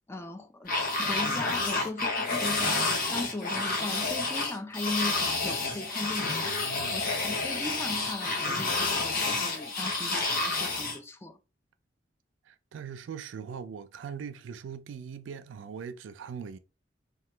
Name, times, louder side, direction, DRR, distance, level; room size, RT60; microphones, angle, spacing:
voice 1, 0.1-11.4, left 2 dB, 15° left, 0.3 m, -38 dB
sound 1, 0.7-11.0, left 3 dB, 50° left, 0.7 m, -29 dB
voice 2, 6.4-7.2 12.5-16.6, right 7 dB, 85° right, 0.4 m, -41 dB
2.8 x 2.2 x 3.2 m
head